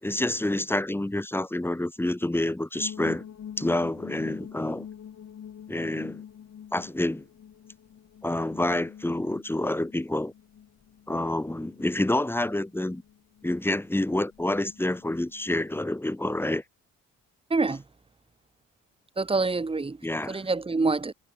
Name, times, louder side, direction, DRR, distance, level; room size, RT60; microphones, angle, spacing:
voice 1, 0.0-3.2 3.6-4.9 5.7-6.2 6.7-7.2 8.2-10.3 11.1-13.0 13.4-16.6 20.0-20.4, left 1 dB, 5° left, 2.4 m, -28 dB
sound 1, 2.7-15.8, left 9 dB, 60° left, 7.9 m, -46 dB
voice 2, 17.5-17.8 19.2-21.1, right 3 dB, 20° right, 1.2 m, -26 dB
cardioid pair, 90°, 30 cm